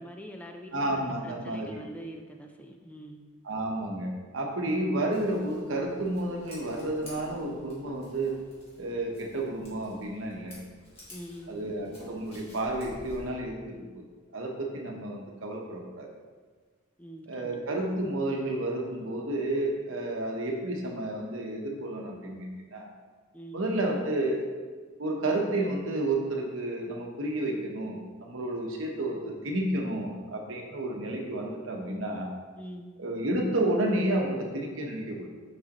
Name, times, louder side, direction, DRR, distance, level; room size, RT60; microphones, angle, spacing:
voice 1, 0.0-3.3 11.1-11.6 17.0-17.6 23.3-23.6 32.6-32.9, right 1 dB, 5° left, 3 dB, 0.4 m, -44 dB
voice 2, 0.7-1.7 3.4-8.3 8.8-10.6 11.5-14.0 14.3-16.1 17.3-22.9 23.5-24.5 25.0-32.3 33.0-35.3, right 1 dB, 85° right, 0 dB, 1.0 m, -31 dB
Scissors, 5.1-13.3, left 1 dB, 30° left, 1.8 m, -51 dB
6.3 x 5.6 x 3.0 m, 1.4 s
head